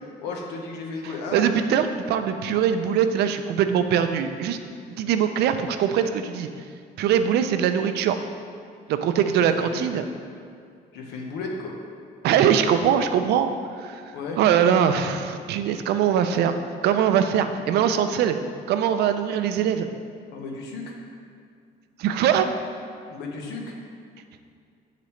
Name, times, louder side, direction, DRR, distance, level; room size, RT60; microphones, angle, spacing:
voice 1, 0.2-1.5 9.3-9.9 10.9-11.8 14.1-14.4 20.3-20.9 23.1-23.8, left 3 dB, 90° left, 0 dB, 1.1 m, -34 dB
voice 2, 1.3-4.6 5.0-6.5 7.0-8.2 8.9-10.0 12.2-13.5 13.8-14.0 14.4-18.4 18.7-19.9 22.0-22.5, right 8 dB, 75° right, 9 dB, 0.5 m, -22 dB
8.2 x 6.7 x 3.2 m, 2.3 s
cardioid pair, 110°, 17 cm